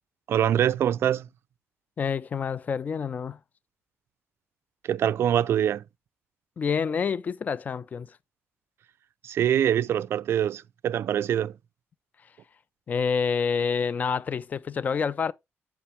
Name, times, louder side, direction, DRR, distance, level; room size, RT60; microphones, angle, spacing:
voice 1, 0.3-1.3 4.8-5.8 9.2-11.6, right 10 dB, 60° right, 0.3 m, -24 dB
voice 2, 2.0-3.4 6.6-8.2 12.2-12.3 12.9-15.3, left 6 dB, 35° left, 0.4 m, -28 dB
8.4 x 5.8 x 3.2 m
cardioid pair, 145°, 5 cm